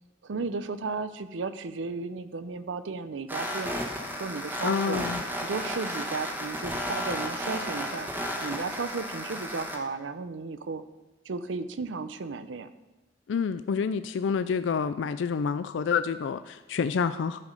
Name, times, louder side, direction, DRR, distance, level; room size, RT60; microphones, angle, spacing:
voice 1, 0.2-3.8 4.2-5.0 5.4-8.1 8.4-10.8 11.3-12.7, right 4 dB, 85° right, 13 dB, 0.6 m, -34 dB
sound 1, 3.3-9.8, equal, 10° right, 1.2 m, -33 dB
voice 2, 4.6-5.2 13.3-17.4, left 6 dB, 80° left, 11 dB, 0.4 m, -28 dB
13.0 x 5.0 x 5.5 m, 1.1 s
head